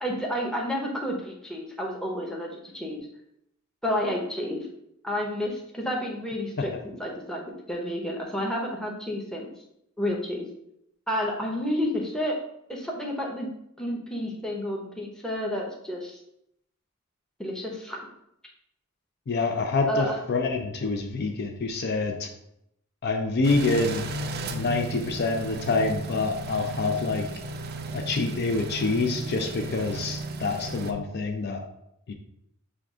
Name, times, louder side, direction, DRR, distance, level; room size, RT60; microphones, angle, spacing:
voice 1, 0.0-3.1 3.8-4.7 5.0-9.5 10.0-10.4 11.1-12.4 12.7-13.5 13.8-16.2 17.4-18.1 19.9-20.2, equal, 5° left, -2 dB, 0.7 m, -30 dB
voice 2, 19.3-22.3 23.0-24.1 24.5-27.3 27.9-31.6 32.1-32.2, left 3 dB, 50° left, 3 dB, 0.5 m, -26 dB
sound 1, 23.4-30.9, right 2 dB, 50° right, 0.4 m, -34 dB
6.3 x 2.3 x 3.6 m, 0.77 s
head